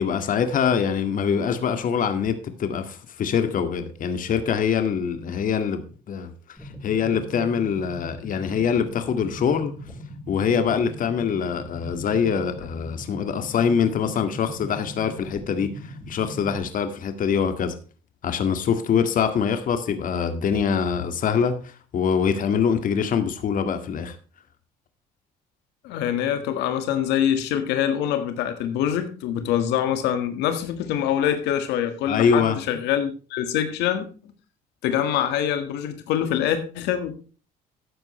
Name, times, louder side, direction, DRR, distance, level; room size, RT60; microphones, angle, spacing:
voice 1, 0.0-6.3 6.8-9.7 10.3-17.8 18.2-24.2 32.1-32.6, left 7 dB, 55° left, 1.9 m, -24 dB
sound 1, 6.6-16.6, equal, ahead, 4.8 m, -40 dB
voice 2, 25.8-34.1 34.8-37.2, left 10 dB, 90° left, 1.7 m, -24 dB
13.5 x 9.5 x 3.2 m
cardioid pair, 110°, 17 cm